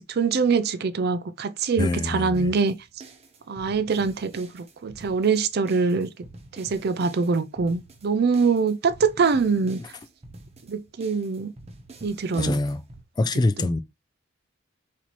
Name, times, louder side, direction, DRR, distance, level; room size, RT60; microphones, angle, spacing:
voice 1, 0.1-2.8 3.5-6.1 6.6-9.8 10.7-11.5 12.0-12.6 13.6-13.8, right 5 dB, 55° right, 0.5 m, -24 dB
voice 2, 1.8-2.5 12.4-12.8 13.2-13.8, left 2 dB, 20° left, 0.3 m, -25 dB
sound 1, 2.3-13.0, right 2 dB, 35° right, 0.8 m, -47 dB
4.2 x 4.2 x 3.0 m
head